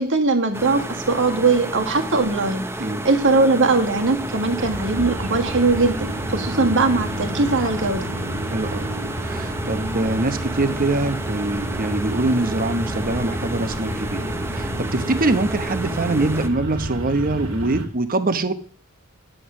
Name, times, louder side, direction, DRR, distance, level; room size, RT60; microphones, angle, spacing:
voice 1, 0.0-2.6 3.0-8.1, right 3 dB, 60° right, 4 dB, 1.8 m, -20 dB
sound 1, 0.5-16.5, right 1 dB, 10° right, 0.7 m, -31 dB
sound 2, 3.8-17.9, right 1 dB, 85° right, 2.0 m, -31 dB
voice 2, 8.5-8.9 9.2-14.3 14.5-18.5, right 2 dB, 40° right, 11 dB, 0.9 m, -23 dB
10.0 x 7.7 x 6.3 m, 0.44 s
head